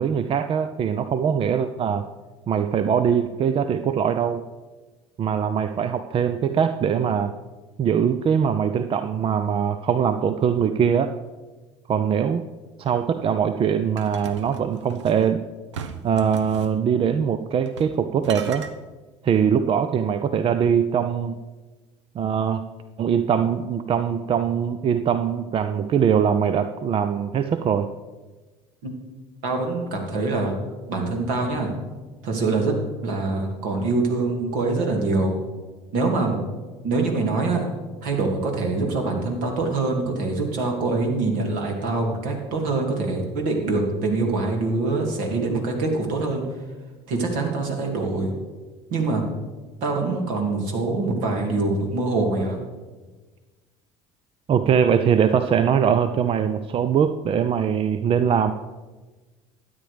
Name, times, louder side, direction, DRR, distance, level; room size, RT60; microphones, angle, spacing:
voice 1, 0.0-2.1 2.5-4.4 5.2-7.3 7.8-11.1 11.9-12.5 12.8-15.4 16.0-18.7 19.2-21.4 22.1-22.6 23.0-27.9 54.5-58.5, right 7 dB, 40° right, 10 dB, 0.6 m, -22 dB
sound 1, 14.0-15.3 15.7-16.7 17.7-18.0 18.2-18.7, right 6 dB, 85° right, 0.8 m, -37 dB
voice 2, 29.4-30.5 30.9-31.7 32.2-32.7 33.0-35.4 35.9-36.4 36.8-37.7 38.0-46.5 47.1-48.3 48.9-49.2 49.8-52.6, right 3 dB, 65° right, 2 dB, 2.7 m, -24 dB
12.5 x 8.9 x 5.1 m, 1.3 s
hypercardioid pair, 75°, 15 cm